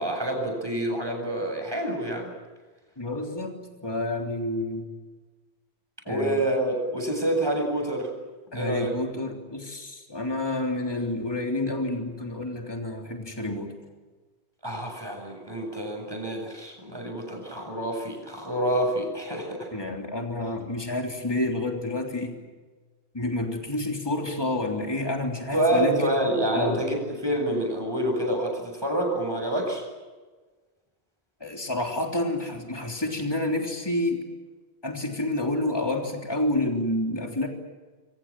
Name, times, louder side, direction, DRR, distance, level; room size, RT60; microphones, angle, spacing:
voice 1, 0.0-2.3 6.1-8.1 8.5-8.9 14.6-19.7 25.5-29.8, right 1 dB, 20° right, 2 dB, 8.0 m, -27 dB
voice 2, 3.0-4.9 6.0-6.4 8.5-13.7 19.7-22.4 23.1-26.2 26.5-26.8 31.4-34.2 34.8-37.5, left 1 dB, 20° left, 1 dB, 3.5 m, -29 dB
27.5 x 25.0 x 7.7 m, 1.3 s
omnidirectional pair, 1.1 m